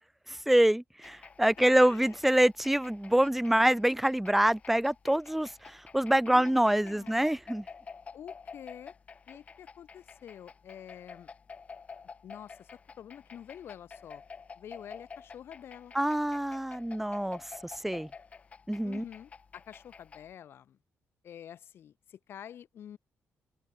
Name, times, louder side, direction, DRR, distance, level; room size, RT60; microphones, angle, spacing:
voice 1, 0.3-7.6 15.9-18.1 18.7-19.0, right 1 dB, 5° right, 1.6 m, -26 dB
sound 1, 1.0-20.3, left 5 dB, 30° left, 3.5 m, -50 dB
voice 2, 1.6-2.2 6.3-7.3 8.1-8.9 9.3-11.3 12.2-14.2 14.6-15.9 18.8-20.8 21.2-23.0, left 9 dB, 55° left, 7.0 m, -48 dB
wide cardioid pair, 180°, 5 cm